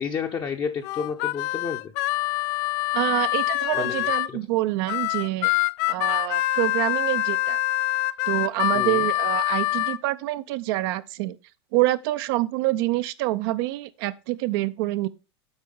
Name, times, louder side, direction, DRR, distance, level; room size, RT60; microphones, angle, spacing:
voice 1, 0.0-1.9 3.7-4.4 8.7-9.1, left 6 dB, 30° left, 0.8 m, -31 dB
Harmonica, 0.8-4.3 4.9-10.0, left 17 dB, 55° left, 0.4 m, -25 dB
voice 2, 2.9-5.5 5.9-7.6 8.3-11.4 11.7-15.1, right 17 dB, 60° right, 0.6 m, -26 dB
8.0 x 4.6 x 5.4 m
hypercardioid pair, 95°, 14 cm